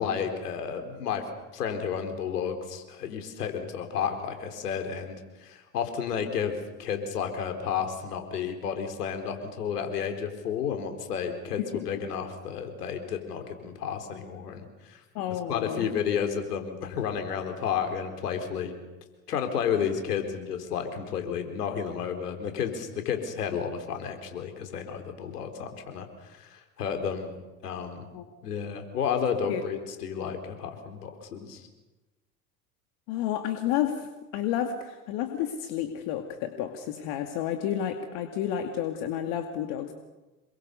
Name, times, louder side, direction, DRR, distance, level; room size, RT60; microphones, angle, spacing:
voice 1, 0.0-15.0 15.5-18.7 19.3-27.3 27.6-28.1 28.4-31.7, left 7 dB, 80° left, 6 dB, 4.2 m, -32 dB
voice 2, 15.1-15.9 28.1-28.2 29.5-29.6 33.1-39.9, left 10 dB, 60° left, 6 dB, 2.5 m, -31 dB
27.5 x 23.0 x 6.9 m, 1.1 s
hypercardioid pair, 80°, 46 cm